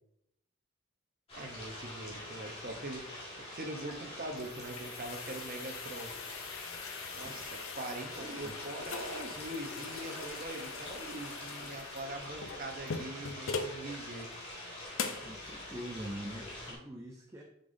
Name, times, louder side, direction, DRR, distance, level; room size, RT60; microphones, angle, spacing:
sound 1, 1.3-16.7, left 1 dB, 30° left, 2.0 m, -45 dB
voice 1, 1.3-3.0 3.5-6.1 7.1-14.3, right 1 dB, 45° right, 4 dB, 0.8 m, -42 dB
sound 2, 4.0-13.8 14.3-14.4 15.0-15.3, left 5 dB, 80° left, 0.6 m, -42 dB
voice 2, 15.2-17.4, right 1 dB, 15° right, 0 dB, 0.5 m, -43 dB
6.6 x 5.4 x 2.6 m, 0.79 s
head